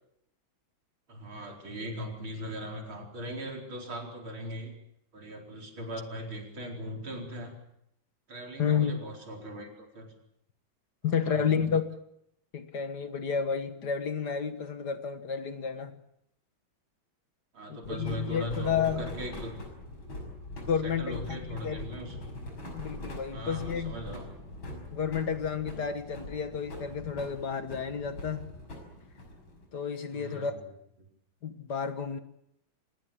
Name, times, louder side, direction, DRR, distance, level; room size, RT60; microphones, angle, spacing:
voice 1, 1.1-4.7 5.1-7.5 8.3-10.1 11.3-11.7 17.5-19.5 20.8-22.2 23.3-24.3 30.1-30.6, equal, 80° right, 5.3 m, -39 dB
voice 2, 8.6-9.0 11.0-12.0 12.5-15.9 17.7-19.0 20.7-21.9 22.7-24.0 24.9-28.4 29.7-30.6 31.4-32.2, left 7 dB, 55° left, 2.0 m, -31 dB
sound 1, 17.8-29.7, left 1 dB, 85° left, 6.9 m, -43 dB
24.5 x 19.5 x 8.5 m
omnidirectional pair, 2.2 m